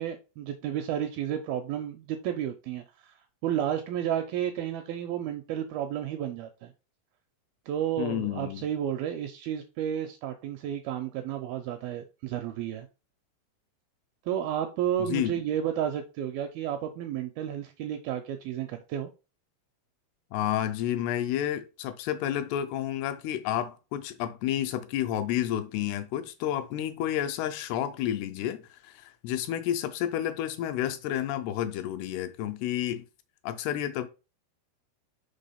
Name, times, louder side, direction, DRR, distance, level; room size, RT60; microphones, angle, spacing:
voice 1, 0.0-3.2 3.4-6.7 7.7-12.9 14.3-19.1, right 10 dB, 85° right, 2.1 m, -32 dB
voice 2, 8.0-8.7 15.1-15.4 20.3-33.1 33.4-34.1, left 11 dB, 80° left, 2.5 m, -30 dB
6.1 x 3.5 x 5.6 m
omnidirectional pair, 4.9 m